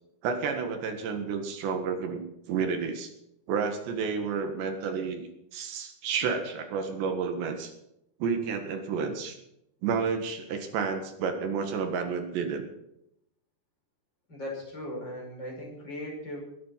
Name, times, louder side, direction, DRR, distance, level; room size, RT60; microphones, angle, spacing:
voice 1, 0.2-3.1 3.5-5.2 5.5-7.7 8.2-9.4 9.8-12.7, right 5 dB, 80° right, 5 dB, 4.0 m, -30 dB
voice 2, 14.3-16.4, left 1 dB, 25° left, -2 dB, 6.2 m, -38 dB
21.0 x 10.0 x 5.9 m, 0.81 s
omnidirectional pair, 5.0 m